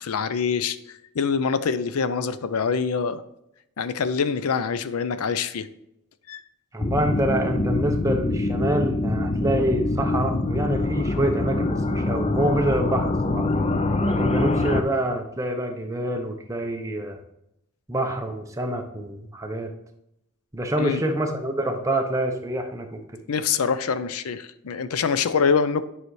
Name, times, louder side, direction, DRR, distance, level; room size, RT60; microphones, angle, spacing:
voice 1, 0.0-3.2 3.8-5.7 6.3-6.4 20.8-21.0 23.3-25.8, left 6 dB, 80° left, 13 dB, 0.5 m, -25 dB
voice 2, 6.7-13.5 14.0-17.2 17.9-19.7 20.5-23.0, right 1 dB, 15° right, 4 dB, 0.8 m, -26 dB
sound 1, 6.8-14.8, left 2 dB, 25° left, 0.5 m, -24 dB
9.4 x 5.6 x 3.2 m, 0.82 s
head